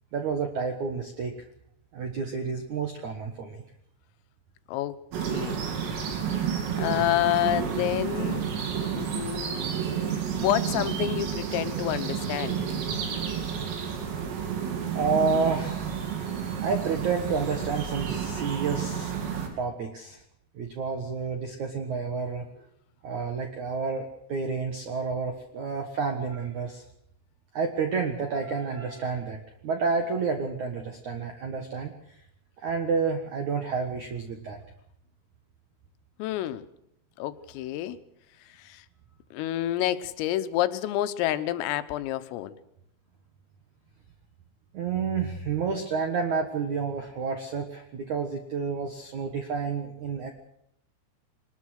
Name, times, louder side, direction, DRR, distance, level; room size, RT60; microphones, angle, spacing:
voice 1, 0.1-1.3 1.9-3.6 14.9-16.0 16.6-19.1 19.6-20.2 20.5-22.4 23.0-26.8 27.5-29.4 29.6-31.9 32.6-34.6 44.7-50.3, right 5 dB, 70° right, 5 dB, 1.8 m, -30 dB
voice 2, 4.7-5.6 6.0-6.2 6.8-8.5 9.0-9.7 10.1-12.6 36.2-36.6 37.2-38.0 38.6-38.8 39.3-42.6, left 14 dB, 85° left, 11 dB, 3.7 m, -29 dB
sound 1, 5.1-19.5, right 7 dB, 90° right, 5.8 m, -30 dB
23.0 x 20.5 x 6.5 m, 0.75 s
omnidirectional pair, 5.8 m